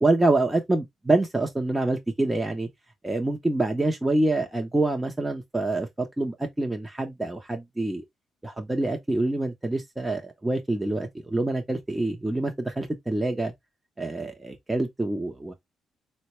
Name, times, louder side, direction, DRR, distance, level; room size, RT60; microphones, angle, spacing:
voice 1, 0.0-2.7 3.0-8.0 8.4-13.5 14.0-15.5, right 2 dB, 15° right, 0.7 m, -26 dB
3.8 x 2.2 x 3.0 m
cardioid pair, 90°, 0 cm